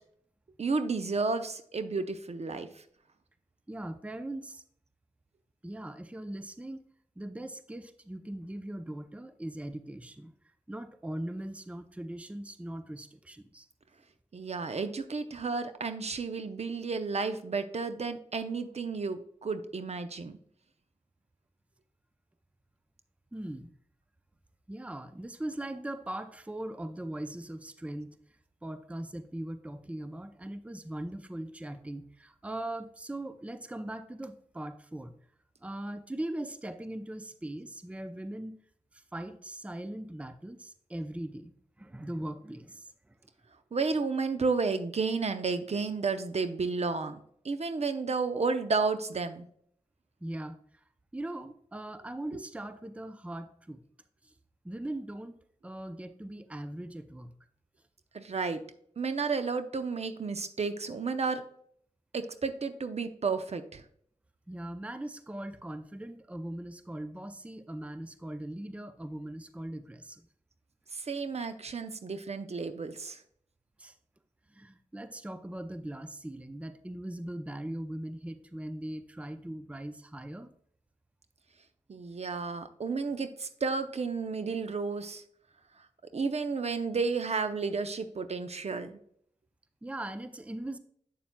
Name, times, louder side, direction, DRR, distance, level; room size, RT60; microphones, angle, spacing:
voice 1, 0.6-2.7 14.3-20.4 43.7-49.5 52.3-52.4 58.1-58.6 59.0-61.4 62.1-63.8 70.9-73.2 81.9-85.2 86.1-89.0, right 4 dB, 55° right, 9 dB, 0.6 m, -32 dB
voice 2, 3.7-4.6 5.6-6.8 7.2-10.3 10.7-13.7 23.3-23.7 24.7-28.2 28.6-35.1 35.6-38.6 38.9-41.5 41.8-43.2 50.2-50.6 51.1-53.8 54.2-54.3 54.6-55.4 55.6-57.3 64.5-70.3 73.8-73.9 74.5-80.5 89.8-90.8, right 1 dB, 10° right, 10 dB, 0.5 m, -40 dB
7.5 x 6.9 x 2.2 m, 0.64 s
cardioid pair, 50°, 13 cm